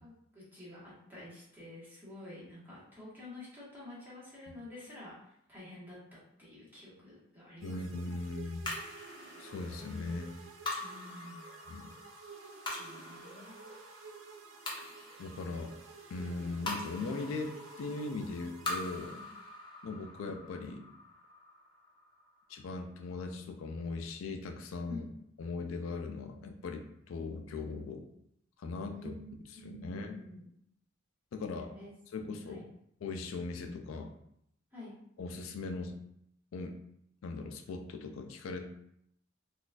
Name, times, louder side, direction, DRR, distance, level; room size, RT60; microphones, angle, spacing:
voice 1, 0.0-7.8 10.8-11.5 12.8-13.5 19.1-19.2 24.9-25.1 28.9-29.3 29.6-30.4 31.5-31.9 32.2-32.6 34.7-34.9, left 2 dB, 10° right, -9 dB, 1.3 m, -49 dB
voice 2, 7.6-8.7 9.4-10.4 11.7-11.9 15.2-15.7 16.1-19.2 19.8-20.9 22.5-25.1 25.4-28.0 28.6-29.1 29.6-30.2 31.3-31.7 32.1-32.6 33.0-34.1 35.2-36.0 36.5-36.8 37.2-38.7, left 3 dB, 80° left, 5 dB, 0.4 m, -39 dB
sound 1, 7.6-19.4, right 5 dB, 70° right, 0.5 m, -52 dB
sound 2, 8.6-23.2, left 2 dB, 25° left, 0.6 m, -44 dB
3.9 x 2.3 x 2.3 m, 0.74 s
head